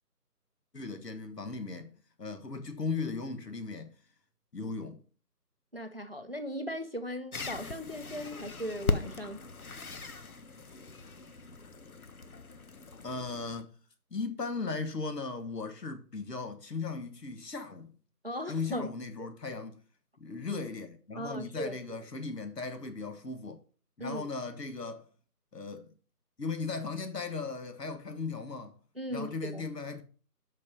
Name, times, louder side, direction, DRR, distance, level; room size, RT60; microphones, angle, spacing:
voice 1, 0.7-3.9 4.5-5.0 13.0-13.7 14.1-17.9 18.5-19.8 20.2-23.6 24.0-25.1 25.5-25.9 26.4-28.7 29.1-30.0, left 4 dB, 75° left, 1.6 m, -37 dB
voice 2, 5.7-9.4 18.2-18.9 19.2-19.3 21.2-21.7 24.0-24.3 29.0-29.7, equal, 40° right, 0.6 m, -38 dB
sound 1, 7.3-13.6, left 3 dB, 60° left, 0.9 m, -38 dB
5.9 x 5.8 x 5.4 m
figure-of-eight pair, 175°, 48 cm